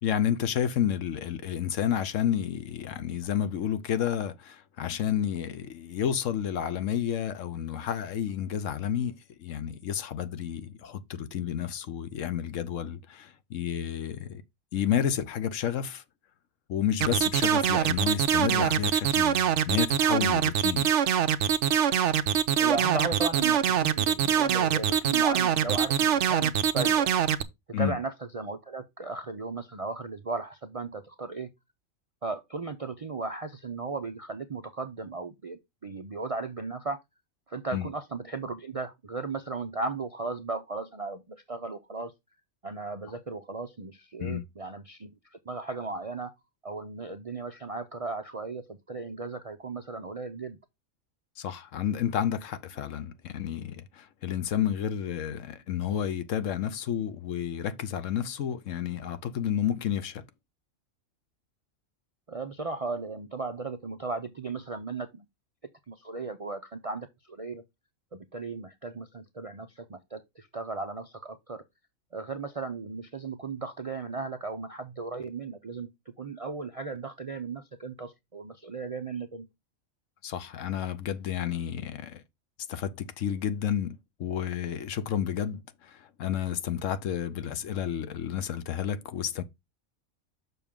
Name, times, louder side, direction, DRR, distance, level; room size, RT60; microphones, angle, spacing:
voice 1, 0.0-9.1 9.4-14.4 14.7-16.0 16.7-19.4 19.7-20.9 27.7-28.0 37.7-37.9 44.2-44.4 51.4-60.2 80.2-82.2 82.7-89.4, left 9 dB, 75° left, 1.1 m, -30 dB
sound 1, 17.0-27.4, right 9 dB, 65° right, 0.9 m, -24 dB
voice 2, 22.6-27.1 27.8-31.5 32.2-37.0 37.5-42.1 42.6-46.3 46.6-50.6 62.3-65.3 65.9-67.6 68.1-71.6 72.1-75.9 76.2-79.5, right 3 dB, 45° right, 0.4 m, -36 dB
6.9 x 5.9 x 3.6 m
omnidirectional pair, 1.4 m